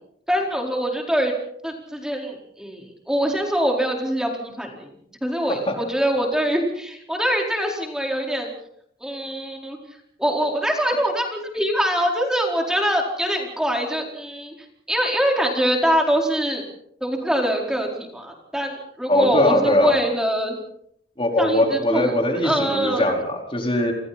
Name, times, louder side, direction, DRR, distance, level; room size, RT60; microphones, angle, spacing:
voice 1, 0.3-1.3 1.6-4.9 5.2-8.5 9.0-9.8 10.2-14.5 14.9-16.6 17.0-20.5 21.4-22.1 22.4-23.0, equal, 5° right, 0 dB, 4.5 m, -23 dB
voice 2, 19.1-20.0 21.2-23.9, left 1 dB, 30° left, 1 dB, 4.5 m, -21 dB
29.5 x 27.5 x 4.3 m, 0.71 s
head